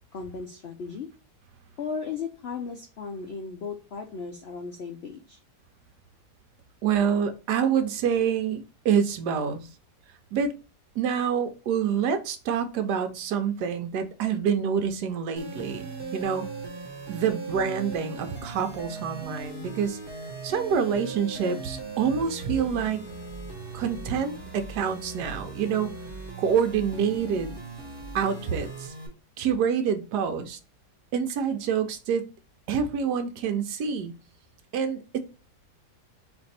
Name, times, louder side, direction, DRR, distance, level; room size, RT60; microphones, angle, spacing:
voice 1, 0.1-1.1 1.8-5.4, left 5 dB, 85° left, 5 dB, 0.5 m, -36 dB
voice 2, 6.8-9.7 10.3-10.5 11.0-16.4 17.1-20.0 20.4-23.0 23.7-25.9 26.4-27.6 28.1-28.9 29.4-30.6 31.1-32.3 32.7-34.1 34.7-35.2, right 7 dB, 75° right, 7 dB, 1.3 m, -27 dB
sound 1, 15.4-29.1, right 3 dB, 20° right, 0.8 m, -39 dB
4.2 x 2.6 x 4.1 m, 0.33 s
omnidirectional pair, 1.8 m